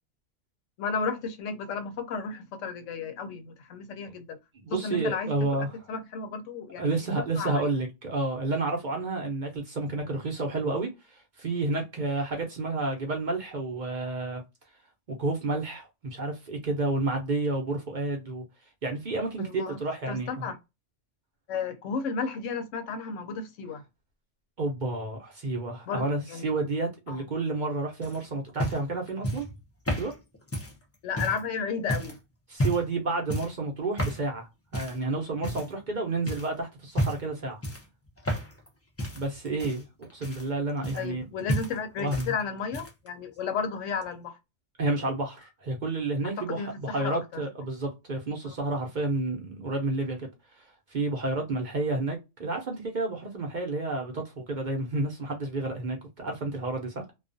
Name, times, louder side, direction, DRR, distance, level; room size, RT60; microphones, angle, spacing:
voice 1, 0.8-4.4 4.7-5.3 5.6-6.9 7.4-7.6 19.4-19.8 20.1-20.6 21.5-23.8 25.9-26.5 27.1-27.2 31.0-32.2 41.0-44.4 46.2-47.4 48.4-48.5, left 5 dB, 85° left, 0.9 m, -33 dB
voice 2, 4.5-5.7 6.8-14.4 15.1-18.4 18.8-20.5 24.6-29.5 30.0-30.1 32.5-34.5 34.7-37.6 39.1-39.8 40.1-41.3 41.5-41.6 42.0-42.3 44.8-50.3 50.6-50.7 50.9-57.0, right 2 dB, 50° right, 0.7 m, -30 dB
sound 1, 28.0-31.4 31.9-32.2 32.5-32.9 33.3-33.6 34.0-34.3 34.7-35.0 35.4-35.9 36.3-36.5 36.9-37.3 37.6-38.7 39.0-41.2 41.5-42.3 42.6-43.1 44.0-44.1, equal, 25° left, 0.3 m, -32 dB
2.4 x 2.2 x 2.5 m
omnidirectional pair, 1.3 m